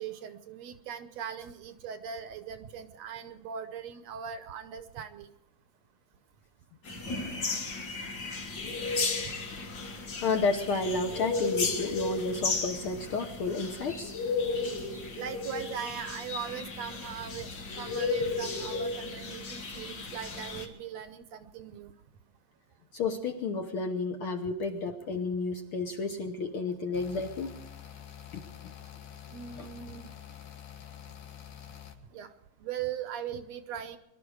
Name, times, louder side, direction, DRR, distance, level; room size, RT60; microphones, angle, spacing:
voice 1, 0.0-5.3 15.2-17.5 17.8-21.9 29.3-30.1 32.1-32.3 32.6-34.0, right 8 dB, 75° right, 10 dB, 1.8 m, -40 dB
sound 1, 6.8-20.7, left 3 dB, 40° left, 2.0 m, -34 dB
voice 2, 10.2-14.1 22.9-27.6 28.3-28.4 29.6-29.7, left 3 dB, 65° left, 5 dB, 1.5 m, -31 dB
sound 2, 26.9-31.9, left 10 dB, 85° left, 2.9 m, -47 dB
23.0 x 12.5 x 4.8 m, 0.89 s
omnidirectional pair, 3.4 m